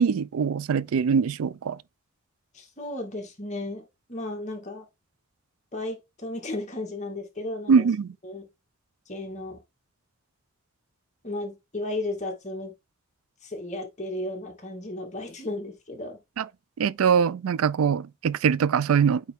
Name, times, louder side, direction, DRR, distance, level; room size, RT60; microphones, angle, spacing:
voice 1, 0.0-1.8 7.7-8.1 16.4-16.5 16.8-19.2, right 6 dB, 85° right, 0.4 m, -22 dB
voice 2, 2.5-4.9 5.7-7.9 8.2-8.5 9.1-9.6 11.2-12.7 13.4-16.2, left 2 dB, 35° left, 2.0 m, -34 dB
8.6 x 3.5 x 3.6 m
head